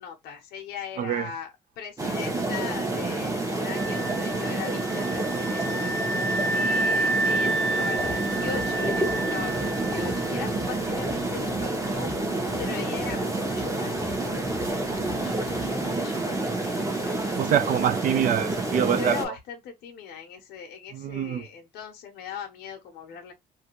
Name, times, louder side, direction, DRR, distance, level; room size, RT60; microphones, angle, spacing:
voice 1, 0.0-5.9 6.5-12.1 12.6-17.5 18.9-23.3, left 7 dB, 75° left, 0.7 m, -40 dB
sound 1, 2.0-19.3, right 2 dB, 20° right, 0.8 m, -28 dB
sound 2, 3.7-10.5, right 2 dB, 75° right, 0.8 m, -29 dB
sound 3, 8.0-16.0, left 5 dB, 30° left, 0.4 m, -41 dB
voice 2, 17.3-19.2 20.9-21.4, right 9 dB, 55° right, 0.4 m, -25 dB
2.5 x 2.3 x 2.9 m
cardioid pair, 110°, 17 cm